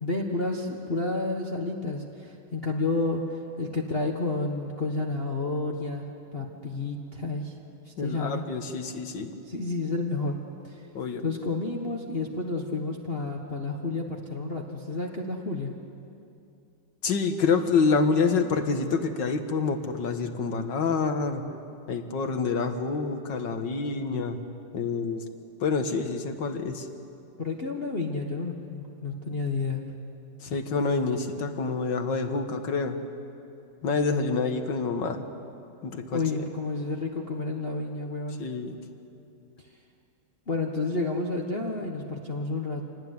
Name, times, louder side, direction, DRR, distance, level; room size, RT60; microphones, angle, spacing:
voice 1, 0.0-6.1 6.3-7.6 7.8-8.4 9.4-10.4 10.6-10.8 11.2-15.7 27.4-29.9 36.1-38.4 40.5-42.8, left 3 dB, 30° left, 0 dB, 1.5 m, -30 dB
voice 2, 8.0-9.3 10.9-11.2 17.0-21.4 21.9-24.4 24.7-25.2 25.6-26.9 30.4-33.0 33.8-35.2 35.8-36.2 38.4-38.7, left 4 dB, 60° left, 7 dB, 2.1 m, -27 dB
27.0 x 19.0 x 9.6 m, 2.7 s
omnidirectional pair, 2.3 m